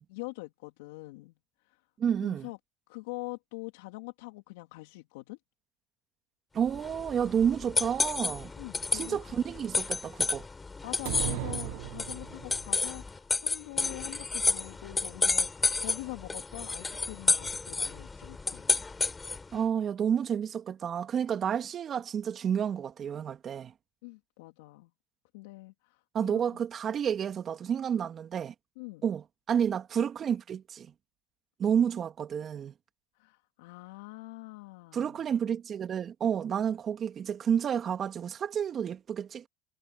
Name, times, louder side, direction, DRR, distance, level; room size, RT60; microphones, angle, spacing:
voice 1, 0.1-1.3 1.6-1.8 2.2-2.6 2.9-5.4 8.6-9.3 10.8-19.0 24.0-24.9 25.3-26.6 28.8-29.1 33.1-35.2, left 25 dB, 75° left, 2.4 m, -44 dB
voice 2, 2.0-2.5 6.5-8.5 8.9-10.5 19.5-23.7 26.1-28.5 29.0-30.9 31.6-32.7 34.9-39.5, right 8 dB, 35° right, 2.4 m, -30 dB
sound 1, 6.7-19.5, left 3 dB, 20° left, 2.9 m, -31 dB
sound 2, 11.0-12.6, right 26 dB, 70° right, 0.5 m, -36 dB
hypercardioid pair, 95°, 0 cm